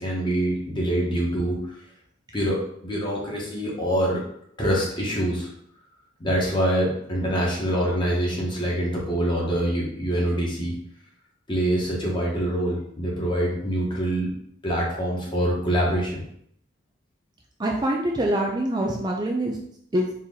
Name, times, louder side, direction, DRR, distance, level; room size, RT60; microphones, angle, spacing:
voice 1, 0.0-1.9 2.3-4.2 4.6-5.5 6.2-10.8 11.5-14.3 14.6-16.2, right 1 dB, 25° left, -3 dB, 1.3 m, -25 dB
voice 2, 17.6-19.6 19.9-20.1, right 1 dB, 25° right, 0 dB, 0.4 m, -24 dB
4.4 x 2.9 x 3.8 m, 0.69 s
head